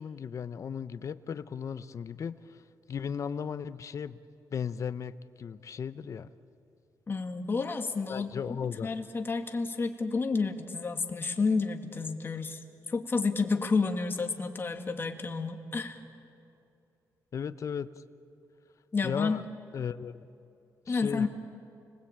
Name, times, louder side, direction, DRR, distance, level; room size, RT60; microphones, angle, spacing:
voice 1, 0.0-2.6 2.9-4.2 4.5-6.3 8.1-8.9 17.3-17.9 19.0-19.4 19.7-20.2 20.9-21.3, left 7 dB, 45° left, 13 dB, 0.8 m, -36 dB
voice 2, 7.1-12.6 12.9-16.0 18.9-19.4 20.9-21.3, left 4 dB, 30° left, 5 dB, 1.8 m, -30 dB
29.5 x 20.0 x 8.8 m, 2.7 s
cardioid pair, 125°, 7 cm